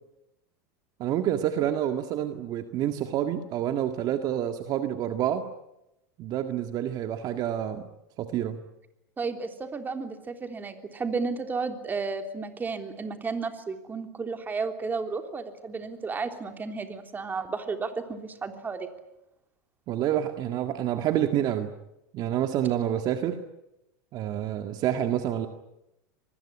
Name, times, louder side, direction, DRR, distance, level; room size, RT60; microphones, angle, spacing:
voice 1, 1.0-5.5 6.2-7.9 8.2-8.6 19.9-21.7 22.1-23.4 24.1-25.5, right 11 dB, 45° right, 7 dB, 1.9 m, -28 dB
voice 2, 9.2-18.9, right 4 dB, 20° right, 6 dB, 3.4 m, -33 dB
25.5 x 20.5 x 9.9 m, 0.89 s
supercardioid pair, 115°, 9 cm